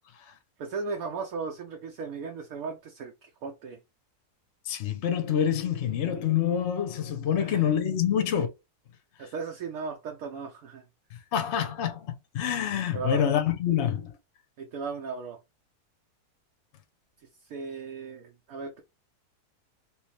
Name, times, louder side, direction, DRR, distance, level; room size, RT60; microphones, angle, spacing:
voice 1, 0.6-3.8 7.4-7.7 9.2-10.8 12.9-13.3 14.6-15.4 17.4-18.8, right 4 dB, 70° right, 1.1 m, -36 dB
voice 2, 4.7-8.5 11.3-14.1, left 9 dB, 60° left, 0.8 m, -26 dB
3.1 x 3.1 x 3.1 m
omnidirectional pair, 1.7 m